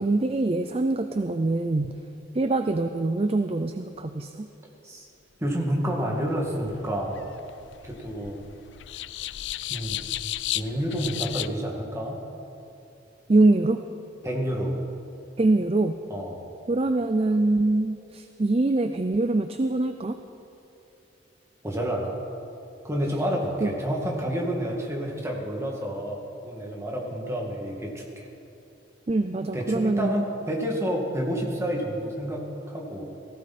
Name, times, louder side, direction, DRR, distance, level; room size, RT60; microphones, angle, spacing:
voice 1, 0.0-2.0 2.3-4.5 13.3-13.8 15.4-16.0 16.7-20.2 23.6-23.7 29.1-30.1, right 2 dB, 30° right, 8 dB, 0.4 m, -24 dB
voice 2, 5.4-7.3 7.8-8.4 9.7-10.0 10.5-12.2 14.2-14.8 16.1-16.4 21.6-22.2 22.8-28.3 29.5-33.0, equal, 15° right, -1 dB, 2.2 m, -29 dB
sound 1, 6.2-11.5, left 14 dB, 75° left, 0.4 m, -34 dB
18.0 x 15.5 x 4.3 m, 2.7 s
head